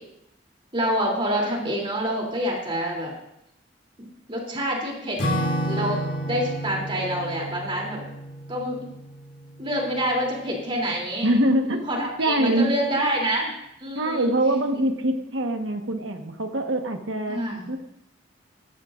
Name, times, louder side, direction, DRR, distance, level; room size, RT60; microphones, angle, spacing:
voice 1, 0.7-3.1 4.0-5.2 5.6-6.0 6.2-8.0 8.5-8.9 9.6-11.3 11.7-13.5 13.8-14.3 17.3-17.7, equal, 30° right, -1 dB, 3.3 m, -27 dB
Acoustic guitar / Strum, 5.2-10.0, equal, 75° left, 2.8 m, -30 dB
voice 2, 11.2-11.8 12.2-12.8 13.9-17.4 17.7-17.8, right 1 dB, 75° right, 4 dB, 1.4 m, -23 dB
18.5 x 13.5 x 2.6 m, 0.80 s
head